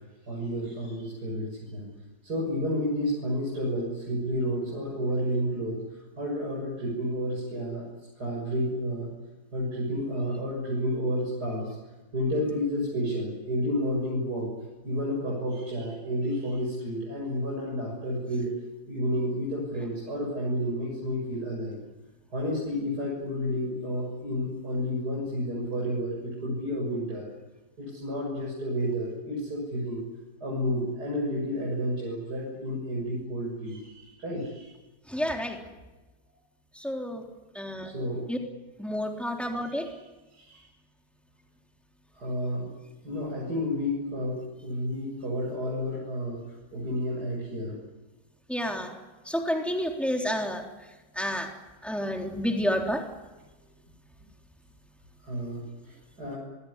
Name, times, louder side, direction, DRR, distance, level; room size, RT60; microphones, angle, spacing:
voice 1, 0.3-1.9 2.2-5.8 6.2-7.8 8.2-9.1 9.5-11.7 12.1-14.5 14.8-18.6 18.9-21.8 22.3-27.3 27.8-30.0 30.4-34.7 37.8-38.2 39.6-40.0 40.3-40.6 42.1-42.7 43.0-46.4 46.7-47.8 55.2-56.4, equal, 75° right, -4 dB, 7.5 m, -31 dB
voice 2, 35.1-35.6 36.8-37.2 37.6-37.9 38.3-38.4 38.8-39.9 48.5-48.9 49.3-50.6 51.2-51.5 51.8-53.0, equal, ahead, 1 dB, 3.6 m, -29 dB
25.0 x 22.5 x 9.9 m, 1.1 s
omnidirectional pair, 1.7 m